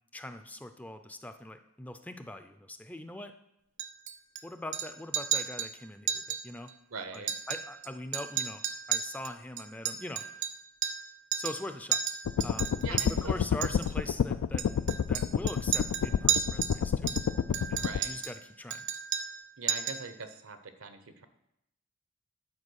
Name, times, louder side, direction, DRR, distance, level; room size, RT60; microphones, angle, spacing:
voice 1, 0.1-3.3 4.4-6.7 7.1-8.6 8.9-10.2 11.4-12.0 12.4-14.7 15.1-17.1 17.7-18.9, left 1 dB, 5° left, 8 dB, 0.4 m, -42 dB
Chink clink, 3.8-4.4 4.7-4.9 5.1-5.7 6.1-6.4 6.7-6.8 7.1-7.9 8.1-11.1 11.3-11.6 11.9-13.1 13.6-13.9 14.6-16.8 17.1-18.4 18.7-19.4 19.7-20.1, right 9 dB, 60° right, 0.6 m, -32 dB
voice 2, 6.9-7.3 12.8-13.4 17.7-18.1 19.6-21.3, right 4 dB, 85° right, 9 dB, 0.9 m, -42 dB
sound 1, 12.3-18.0, left 7 dB, 90° left, 0.3 m, -29 dB
9.7 x 4.7 x 6.4 m, 0.81 s
head